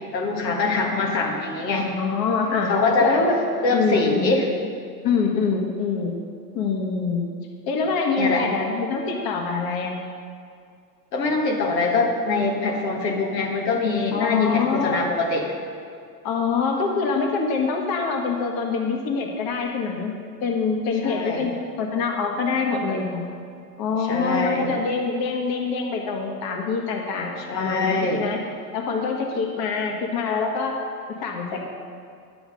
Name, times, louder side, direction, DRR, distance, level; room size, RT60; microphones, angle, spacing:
voice 1, 0.1-1.9 2.7-3.2 3.6-4.5 8.2-8.5 11.1-15.5 21.0-21.5 24.0-24.7 27.5-28.2, left 3 dB, 85° left, 0 dB, 1.7 m, -23 dB
voice 2, 1.7-2.7 3.0-3.4 3.7-4.3 5.0-6.2 6.5-7.2 7.7-10.0 14.1-15.0 16.2-20.1 20.4-21.5 21.8-23.2 23.8-28.4 28.7-30.8 31.2-31.7, left 4 dB, 45° left, 1 dB, 1.6 m, -25 dB
10.0 x 7.9 x 5.2 m, 2.3 s
hypercardioid pair, 100°, 49 cm